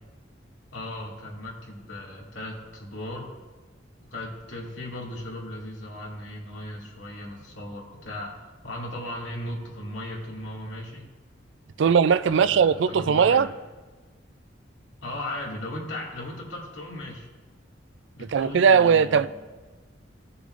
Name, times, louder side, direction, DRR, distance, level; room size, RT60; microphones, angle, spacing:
voice 1, 0.7-3.3 4.1-8.3 8.6-11.1 11.8-11.9 12.3-13.5 15.0-17.3 18.1-19.3, left 1 dB, 80° left, 2.2 m, -37 dB
voice 2, 11.8-13.5 18.3-19.3, right 6 dB, 75° right, 0.4 m, -19 dB
17.5 x 6.8 x 2.5 m
head